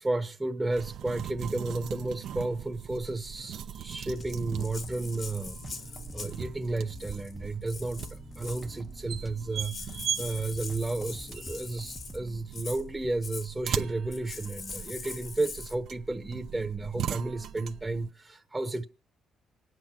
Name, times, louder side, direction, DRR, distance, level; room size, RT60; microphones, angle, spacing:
voice 1, 0.0-5.6 6.1-8.0 8.4-18.8, right 2 dB, 15° right, 1.0 m, -32 dB
sound 1, 0.7-18.1, right 9 dB, 75° right, 0.7 m, -39 dB
sound 2, 4.1-12.4, left 1 dB, 5° left, 0.7 m, -47 dB
Rattle (instrument), 4.2-6.4 6.9-7.3 7.7-8.7 9.3-9.4 9.6-12.2 12.5-12.8 13.2-13.5 14.1-15.7, left 5 dB, 55° left, 1.8 m, -43 dB
26.0 x 9.5 x 4.5 m
cardioid pair, 90°, 0 cm